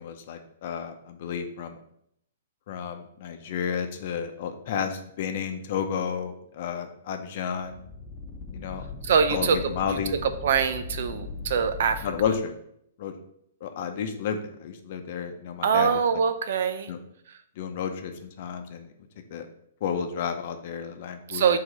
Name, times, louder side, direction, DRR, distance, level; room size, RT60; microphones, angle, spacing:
voice 1, 0.0-1.8 2.7-7.8 8.5-8.8 9.3-10.1 12.0-12.5 13.0-13.1 13.6-15.9 16.9-17.0 17.6-18.9 19.3-19.5 19.8-21.4, left 7 dB, 50° left, 6 dB, 0.7 m, -31 dB
sound 1, 7.5-12.4, left 4 dB, 25° left, 1.1 m, -39 dB
voice 2, 9.0-12.1 15.6-16.9 21.3-21.6, right 6 dB, 65° right, 9 dB, 0.6 m, -24 dB
4.7 x 3.8 x 5.2 m, 0.72 s
hypercardioid pair, 150°, 0 cm